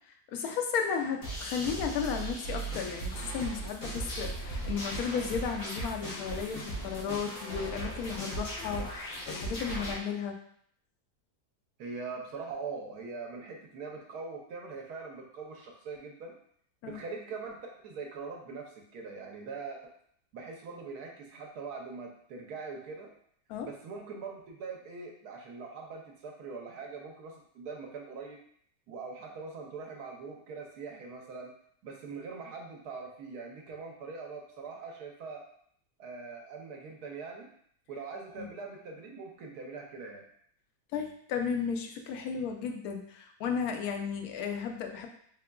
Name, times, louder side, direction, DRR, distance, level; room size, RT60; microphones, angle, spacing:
voice 1, 0.3-10.4 16.8-17.0 23.5-23.7 38.4-38.5 40.9-45.1, left 6 dB, 70° left, 3 dB, 1.0 m, -34 dB
sound 1, 1.2-10.0, right 1 dB, 55° left, 1.6 m, -37 dB
voice 2, 11.8-16.3 16.8-19.9 20.3-23.1 23.6-28.4 28.9-31.5 31.8-35.4 36.0-37.5 37.9-40.3, right 4 dB, 70° right, 1 dB, 1.1 m, -42 dB
3.7 x 3.5 x 2.2 m, 0.65 s
omnidirectional pair, 1.8 m